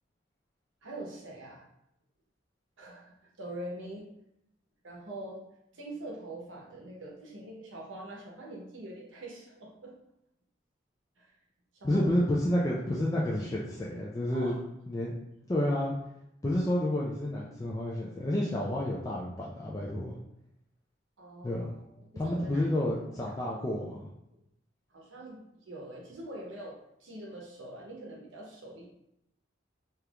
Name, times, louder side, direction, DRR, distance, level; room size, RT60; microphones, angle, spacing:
voice 1, 0.8-1.6 2.8-4.1 4.8-5.4 5.7-9.9 11.2-11.3 11.7-12.1 14.3-14.5 21.2-21.6 22.0-22.7 23.2-23.3 24.9-28.9, right 1 dB, 85° right, -2 dB, 0.9 m, -44 dB
voice 2, 11.8-14.5 14.9-15.2 15.5-15.9 16.4-20.1 21.4-21.7 22.2-24.0, left 1 dB, 15° left, -5 dB, 0.3 m, -30 dB
3.4 x 2.9 x 2.4 m, 0.81 s
head